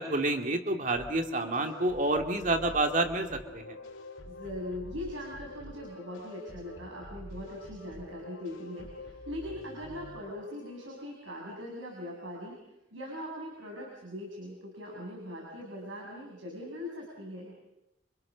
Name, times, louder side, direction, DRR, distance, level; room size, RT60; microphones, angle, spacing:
voice 1, 0.0-3.8, right 2 dB, 40° right, 4 dB, 2.6 m, -29 dB
sound 1, 0.9-11.0, left 1 dB, 80° left, 3.7 m, -47 dB
voice 2, 4.3-12.6 12.9-17.5, left 1 dB, 80° right, -2 dB, 7.3 m, -41 dB
30.0 x 26.0 x 6.4 m, 0.92 s
head